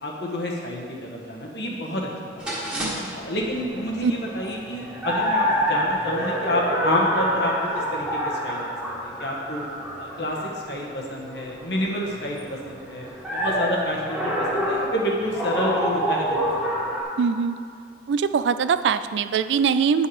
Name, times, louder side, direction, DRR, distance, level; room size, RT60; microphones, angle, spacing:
voice 1, 0.0-2.1 2.3-2.5 3.1-9.6 10.0-16.7, equal, 65° left, -2 dB, 1.3 m, -29 dB
sound 1, 2.4-17.0, equal, 5° right, 1.5 m, -28 dB
voice 2, 17.2-17.6 18.1-20.1, right 6 dB, 85° right, 12 dB, 0.3 m, -22 dB
8.9 x 5.5 x 4.9 m, 2.2 s
head